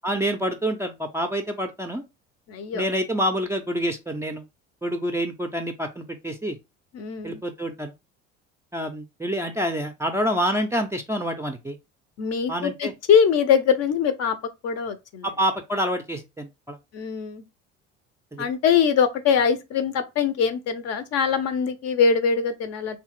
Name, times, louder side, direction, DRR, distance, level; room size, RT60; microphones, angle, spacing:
voice 1, 0.0-2.0 2.7-4.4 4.8-6.6 7.2-7.9 8.7-11.8 12.5-12.9 15.2-16.8 18.3-18.5, equal, 10° right, 0.4 m, -27 dB
voice 2, 2.5-2.8 6.9-7.4 12.2-14.4 14.6-15.3 16.9-17.4 18.4-23.0, left 7 dB, 45° left, 0.6 m, -22 dB
3.0 x 2.2 x 2.9 m
hypercardioid pair, 60°, 36 cm